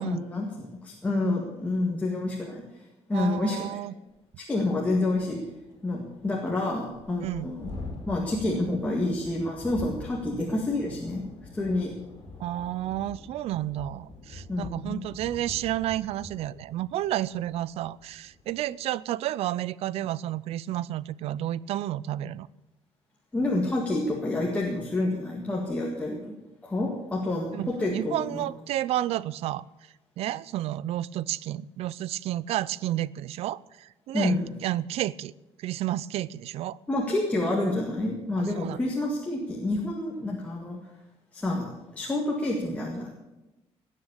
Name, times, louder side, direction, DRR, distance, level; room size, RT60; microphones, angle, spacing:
voice 1, 0.0-2.6 3.1-3.6 4.4-5.4 5.8-7.7 8.1-11.2 11.5-12.0 14.5-15.0 23.3-26.2 26.6-28.4 34.1-34.4 36.9-40.8 41.3-41.7 42.0-43.1, left 2 dB, 10° left, -2 dB, 1.9 m, -28 dB
voice 2, 3.1-3.9 7.2-7.5 12.4-22.5 27.5-29.7 30.2-35.3 35.6-36.8 38.6-38.8, right 13 dB, 70° right, 20 dB, 0.5 m, -31 dB
Thunderstorm, 4.2-4.3 4.6-4.7 5.0-18.6, left 2 dB, 35° left, 4.0 m, -45 dB
19.0 x 7.4 x 8.3 m, 1.0 s
cardioid pair, 175°, 11 cm